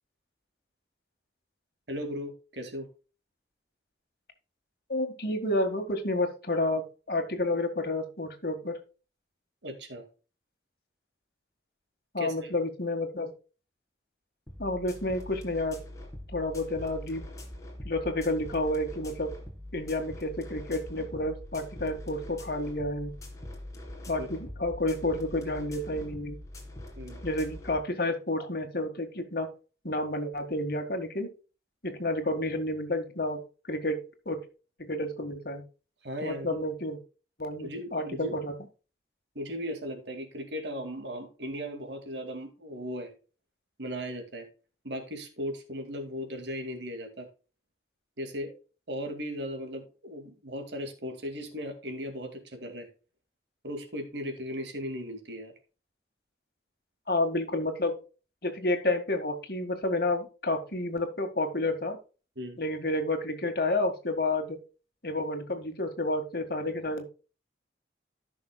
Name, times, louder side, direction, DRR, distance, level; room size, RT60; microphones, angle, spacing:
voice 1, 1.9-2.9 9.6-10.1 12.2-12.5 24.2-24.3 27.0-27.2 36.0-36.6 37.6-38.4 39.4-43.1 43.8-44.5 44.8-47.3 48.2-48.5 48.9-52.9 53.6-55.5 62.4-62.6, equal, 75° right, 6 dB, 2.2 m, -37 dB
voice 2, 4.9-8.8 12.1-13.3 14.6-15.8 16.3-17.2 17.9-19.3 19.7-23.2 24.1-26.4 27.2-29.5 29.8-31.3 31.8-33.4 33.7-34.0 34.3-34.5 34.8-35.6 36.2-37.0 37.4-38.5 57.1-58.0 58.4-62.0 62.6-64.6 65.0-67.0, left 2 dB, 55° left, 6 dB, 1.8 m, -30 dB
sound 1, 14.5-27.8, left 1 dB, 15° left, 2.0 m, -43 dB
14.5 x 6.2 x 2.3 m, 0.34 s
head